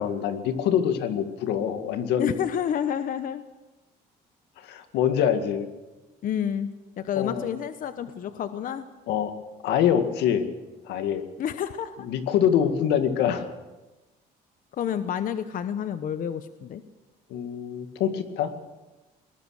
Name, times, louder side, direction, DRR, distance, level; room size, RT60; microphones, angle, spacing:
voice 1, 0.0-2.3 4.6-5.7 7.2-7.5 9.1-9.3 9.6-10.4 10.9-11.2 12.0-13.5 17.3-18.5, left 9 dB, 85° left, 8 dB, 2.0 m, -25 dB
voice 2, 2.2-3.4 6.2-6.7 7.0-8.9 11.4-12.1 14.7-16.8, left 9 dB, 55° left, 11 dB, 1.0 m, -29 dB
21.5 x 19.0 x 6.5 m, 1.1 s
cardioid pair, 110°, 17 cm